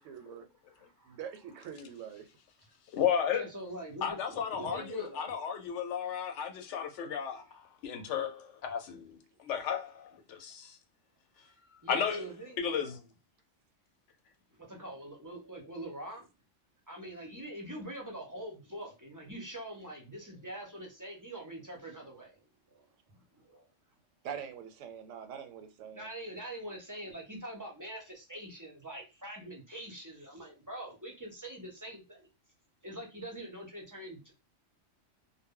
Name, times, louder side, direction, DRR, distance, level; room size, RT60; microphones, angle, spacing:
voice 1, 0.0-0.4 1.0-2.3 24.2-26.1, right 8 dB, 85° right, 0.9 m, -44 dB
voice 2, 0.7-1.2 3.3-5.4 6.9-7.0 10.3-10.4 11.4-13.0 14.5-16.3 16.9-23.7 25.9-32.2 32.8-34.3, right 1 dB, 25° right, 0.4 m, -44 dB
voice 3, 2.9-3.4 4.0-10.8 11.9-12.2 12.6-13.0, left 8 dB, 75° left, 0.9 m, -34 dB
2.1 x 2.0 x 3.5 m
omnidirectional pair, 1.3 m